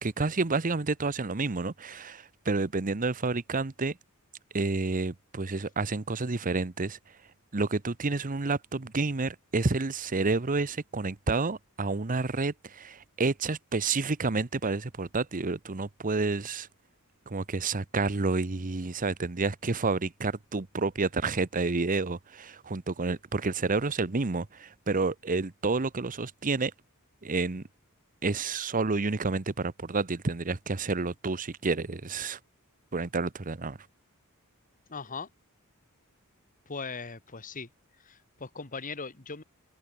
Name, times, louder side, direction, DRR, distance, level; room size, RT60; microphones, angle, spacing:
voice 1, 0.0-4.0 4.5-7.0 7.5-16.7 17.3-26.7 27.2-27.6 28.2-32.4 32.9-33.8, right 3 dB, 40° right, 0.9 m, -29 dB
voice 2, 34.9-35.3 36.7-37.7 38.1-39.4, left 4 dB, 40° left, 1.6 m, -39 dB
head